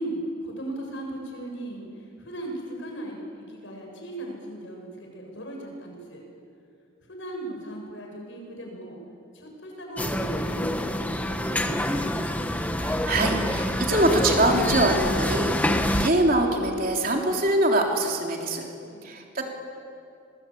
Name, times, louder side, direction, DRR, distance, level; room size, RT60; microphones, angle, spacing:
voice 1, 0.0-3.2 3.5-6.2 7.1-9.0 9.3-12.4 18.8-19.1, right 1 dB, 65° left, 1 dB, 7.1 m, -37 dB
sound 1, 10.0-16.1, left 1 dB, 10° left, 1.1 m, -26 dB
voice 2, 12.8-18.6 19.0-19.4, right 1 dB, 45° right, 1 dB, 3.5 m, -24 dB
27.5 x 21.5 x 8.7 m, 2.5 s
head